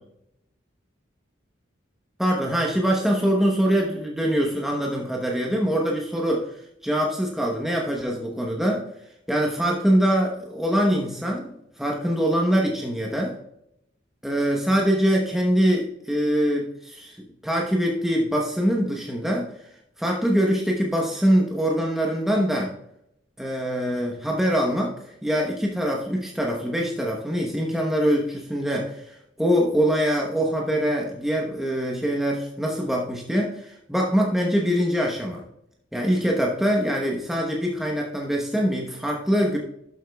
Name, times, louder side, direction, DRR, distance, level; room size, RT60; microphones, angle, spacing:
voice 1, 2.2-6.5 6.8-8.8 9.3-13.3 14.2-17.2 17.4-19.7 20.0-22.7 23.4-35.4 35.9-39.6, equal, ahead, -2 dB, 1.0 m, -23 dB
12.0 x 7.2 x 2.3 m, 0.76 s
head